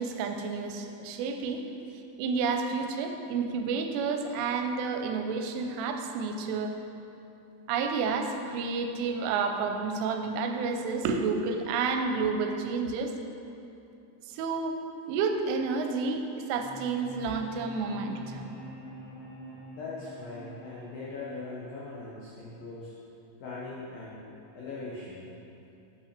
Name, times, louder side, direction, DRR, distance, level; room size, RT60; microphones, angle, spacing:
voice 1, 0.0-1.6 2.2-6.8 7.7-13.1 14.3-14.8 15.1-18.5, right 4 dB, 85° right, 5 dB, 3.1 m, -30 dB
sound 1, 16.5-22.5, right 1 dB, 70° left, 2.3 m, -46 dB
voice 2, 19.7-22.9 23.4-24.2 24.5-25.3, left 3 dB, 90° left, -6 dB, 2.0 m, -40 dB
8.9 x 5.7 x 5.8 m, 2.8 s
omnidirectional pair, 5.7 m